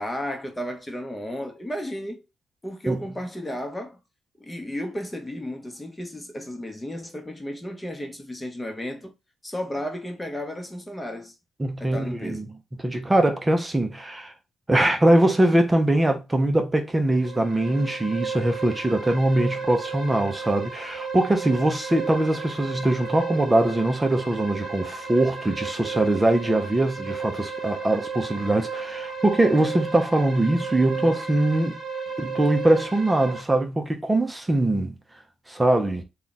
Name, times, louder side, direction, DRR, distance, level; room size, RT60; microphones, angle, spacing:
voice 1, 0.0-2.3 2.6-4.0 4.4-9.1 9.4-11.3 11.8-12.5, equal, 15° left, 1.0 m, -33 dB
voice 2, 11.6-12.5 12.8-14.3 14.7-31.8 32.2-34.9 35.5-36.0, right 1 dB, 15° right, 0.7 m, -22 dB
sound 1, 17.1-33.4, right 4 dB, 45° right, 1.3 m, -34 dB
3.2 x 2.4 x 4.0 m
cardioid pair, 90°, 0 cm